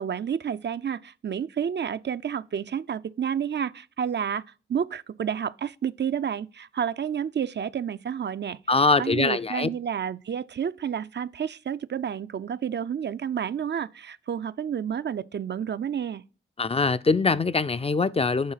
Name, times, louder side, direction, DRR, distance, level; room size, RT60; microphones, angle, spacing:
voice 1, 0.0-4.4 4.7-8.6 9.0-16.2, right 8 dB, 55° right, 0.4 m, -30 dB
voice 2, 8.7-9.7 16.6-18.5, left 3 dB, 30° left, 0.4 m, -23 dB
8.6 x 3.9 x 5.7 m
cardioid pair, 50°, 21 cm